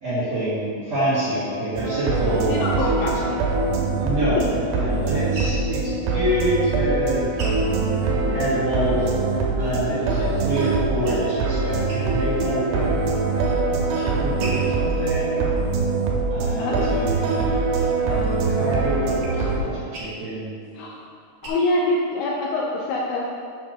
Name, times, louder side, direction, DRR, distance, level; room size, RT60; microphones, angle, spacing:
voice 1, 0.0-3.1 4.0-7.5 7.8-8.0 8.3-13.0 13.9-15.5 16.3-17.6 18.0-20.5, equal, 50° right, -12 dB, 2.0 m, -27 dB
sound 1, 1.8-19.6, right 3 dB, 85° right, 3.6 m, -23 dB
voice 2, 2.5-3.4 16.6-16.9 20.7-21.0 21.4-23.2, left 2 dB, 80° left, -3 dB, 2.8 m, -25 dB
sound 2, 4.3-8.6 9.0-10.3 10.7-11.5 11.8-12.5 12.9-13.5 14.0-16.7 17.2-21.5, right 1 dB, 70° right, 1.5 m, -41 dB
8.5 x 4.4 x 6.1 m, 2.3 s
omnidirectional pair, 5.8 m